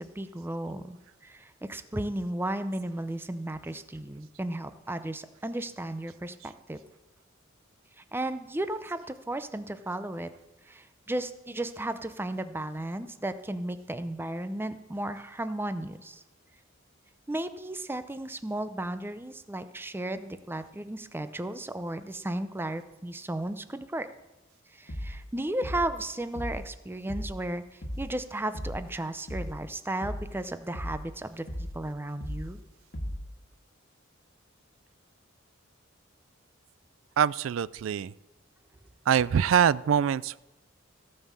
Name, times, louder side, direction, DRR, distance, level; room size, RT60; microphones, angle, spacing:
voice 1, 0.0-6.8 8.0-10.3 10.7-16.2 17.3-24.1 24.7-32.6, right 1 dB, 10° right, 11 dB, 0.6 m, -34 dB
sound 1, 24.9-25.3 25.6-26.0 26.3-26.7 27.1-27.5 27.8-28.2 28.5-28.9 29.3-29.7 30.0-30.4 30.7-31.1 31.5-31.8 32.2-32.6 32.9-33.3, equal, 60° left, 1.5 m, -37 dB
voice 2, 37.2-38.1 39.1-40.4, right 8 dB, 80° right, 20 dB, 0.3 m, -24 dB
16.5 x 5.5 x 7.3 m, 1.0 s
head